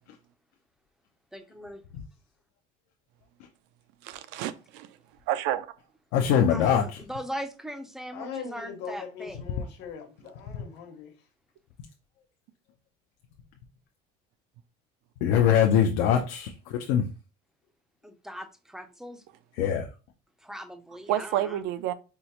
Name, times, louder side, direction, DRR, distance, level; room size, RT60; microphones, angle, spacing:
voice 1, 1.3-1.8 6.5-9.4 18.0-19.2 20.4-21.6, equal, ahead, 0.3 m, -39 dB
voice 2, 4.0-4.9 5.3-5.7 21.1-21.9, right 12 dB, 75° right, 0.4 m, -29 dB
voice 3, 6.1-7.0 15.2-17.0 19.6-19.9, left 8 dB, 85° left, 0.5 m, -23 dB
voice 4, 8.1-11.1, left 6 dB, 65° left, 1.0 m, -40 dB
4.4 x 2.0 x 2.7 m
cardioid pair, 140°, 18 cm